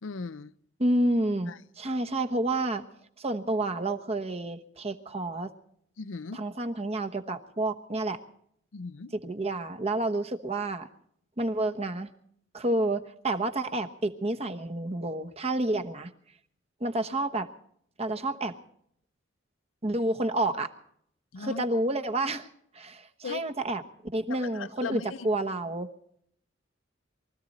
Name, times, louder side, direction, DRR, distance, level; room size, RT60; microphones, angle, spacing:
voice 1, 0.0-0.5 1.5-1.6 6.0-6.4 8.7-9.1 21.3-21.7 23.2-23.5 24.3-25.3, left 4 dB, 85° left, 0.6 m, -38 dB
voice 2, 0.8-2.8 3.2-5.5 6.3-8.2 9.2-10.9 11.4-12.1 12.5-16.1 16.8-17.5 18.0-18.6 19.8-20.7 21.4-22.5 22.7-23.8 24.1-25.9, right 2 dB, 30° right, 1.1 m, -29 dB
23.5 x 14.5 x 4.1 m
head